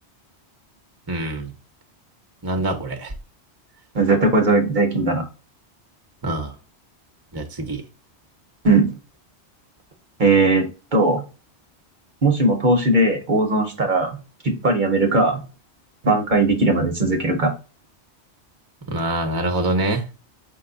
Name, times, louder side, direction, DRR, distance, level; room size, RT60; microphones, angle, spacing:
voice 1, 1.1-1.5 2.4-3.1 6.2-6.5 7.3-7.8 18.9-20.1, right 1 dB, 25° right, 4 dB, 0.8 m, -25 dB
voice 2, 3.9-5.2 8.6-9.0 10.2-10.7 10.9-11.2 12.2-14.2 14.4-15.4 16.0-17.5, right 2 dB, 45° right, 3 dB, 0.9 m, -18 dB
5.3 x 2.3 x 3.8 m, 0.31 s
omnidirectional pair, 1.1 m